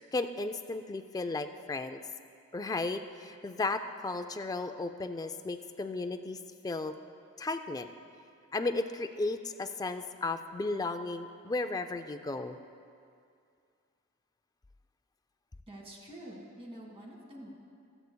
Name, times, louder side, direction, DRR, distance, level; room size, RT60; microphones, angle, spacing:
voice 1, 0.0-2.0 2.5-6.4 6.6-6.9 7.4-7.9 8.5-12.6, left 3 dB, 15° left, 8 dB, 0.3 m, -34 dB
voice 2, 15.7-17.5, right 1 dB, 25° right, -2 dB, 1.8 m, -47 dB
22.0 x 8.0 x 2.3 m, 2.4 s
head